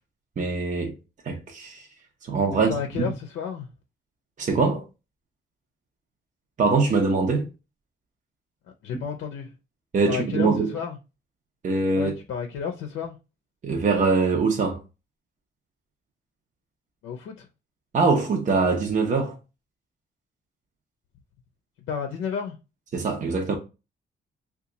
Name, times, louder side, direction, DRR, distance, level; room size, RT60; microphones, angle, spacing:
voice 1, 0.4-0.9 1.2-1.9 2.2-2.7 3.0-3.1 4.4-4.8 6.6-7.5 9.9-10.7 11.6-12.1 13.6-14.8 17.9-19.4 22.9-23.6, right 4 dB, 40° right, 0.7 m, -23 dB
voice 2, 2.7-3.7 8.8-9.5 10.1-11.0 11.9-13.2 17.0-17.5 21.9-22.6, left 7 dB, 80° left, 0.5 m, -31 dB
2.8 x 2.3 x 3.7 m
cardioid pair, 90°, 20 cm